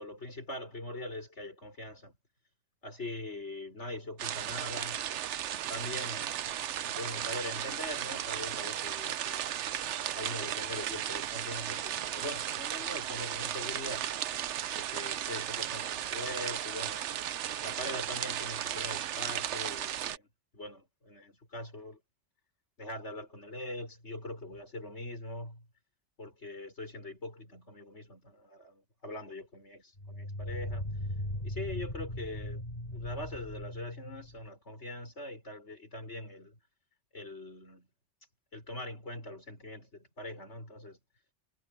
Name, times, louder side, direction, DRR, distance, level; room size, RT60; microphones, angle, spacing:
voice 1, 0.0-2.1 2.8-5.0 5.7-9.5 10.1-14.1 14.7-17.1 17.6-20.3 20.5-22.0 22.8-25.7 26.2-30.9 31.4-32.6 32.9-36.6 37.1-37.9 38.5-41.0, left 1 dB, 70° left, 5.8 m, -42 dB
sound 1, 4.2-20.2, right 11 dB, 75° right, 1.0 m, -35 dB
sound 2, 24.5-24.6 30.0-34.5, left 1 dB, 35° left, 4.5 m, -38 dB
omnidirectional pair, 1.2 m